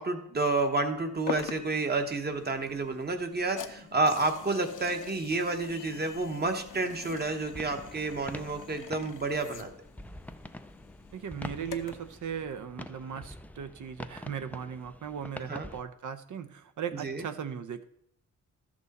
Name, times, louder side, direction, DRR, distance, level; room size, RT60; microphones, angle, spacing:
voice 1, 0.0-9.7 15.5-15.7 17.0-17.2, right 3 dB, 30° right, 6 dB, 1.0 m, -30 dB
sound 1, 1.3-12.1, left 8 dB, 70° left, 0.8 m, -45 dB
sound 2, 7.5-15.8, left 1 dB, 5° left, 0.3 m, -46 dB
voice 2, 11.1-17.9, right 8 dB, 70° right, 11 dB, 0.8 m, -38 dB
13.0 x 6.2 x 4.1 m, 0.74 s
wide cardioid pair, 110°, 31 cm